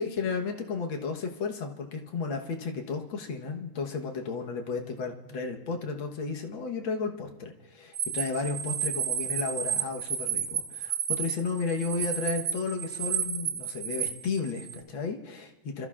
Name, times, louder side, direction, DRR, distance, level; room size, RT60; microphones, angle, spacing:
voice 1, 0.0-15.9, left 4 dB, 75° left, 3 dB, 2.0 m, -33 dB
sound 1, 7.9-14.8, right 8 dB, 45° right, 0.9 m, -32 dB
29.5 x 13.5 x 2.4 m, 1.0 s
omnidirectional pair, 2.2 m